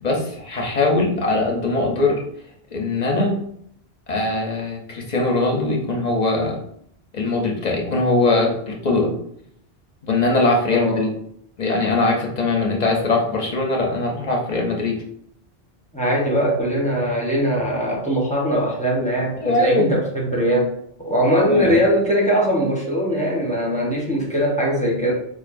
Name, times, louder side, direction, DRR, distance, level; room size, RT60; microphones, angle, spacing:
voice 1, 0.0-2.2 2.7-3.4 4.1-6.6 7.1-9.1 10.0-11.1 11.6-15.0 19.4-19.9 21.5-21.8, left 2 dB, 50° left, 0 dB, 0.7 m, -21 dB
voice 2, 10.7-11.1 15.9-20.7 21.0-25.1, equal, 10° left, -4 dB, 0.8 m, -21 dB
4.6 x 2.5 x 2.5 m, 0.68 s
omnidirectional pair, 1.0 m